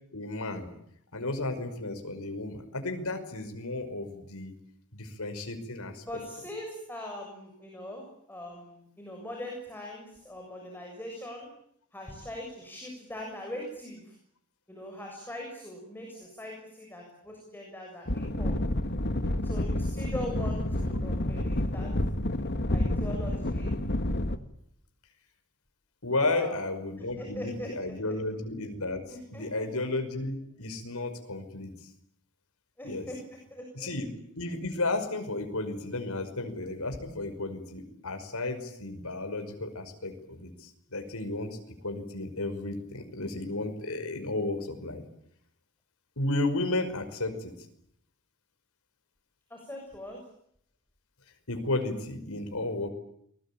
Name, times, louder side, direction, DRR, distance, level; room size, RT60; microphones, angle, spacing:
voice 1, 0.1-0.7 1.1-4.5 4.9-6.0 26.0-31.7 32.8-33.1 33.7-34.1 34.4-41.6 41.8-45.0 46.2-47.5 51.5-52.9, left 2 dB, 75° left, 6 dB, 5.6 m, -33 dB
voice 2, 6.0-11.5 11.9-14.1 14.7-18.6 19.4-21.9 22.7-23.7 26.1-26.6 27.0-27.9 29.1-29.8 32.8-33.2 33.5-33.9 49.5-50.2, left 1 dB, 10° left, 0 dB, 7.1 m, -41 dB
sound 1, 18.1-24.4, left 1 dB, 50° left, 1.8 m, -29 dB
29.5 x 21.5 x 8.9 m, 0.70 s
head